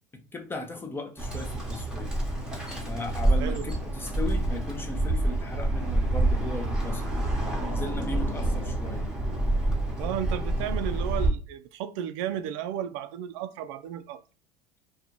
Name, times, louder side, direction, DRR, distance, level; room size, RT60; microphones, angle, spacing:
voice 1, 0.3-2.1 2.9-7.0 7.4-9.1, left 2 dB, 15° left, 0.5 m, -37 dB
Bird, 1.2-11.3, right 2 dB, 5° right, 0.8 m, -27 dB
voice 2, 10.0-14.2, right 10 dB, 70° right, 0.4 m, -33 dB
2.5 x 2.3 x 2.7 m
supercardioid pair, 125°, 16 cm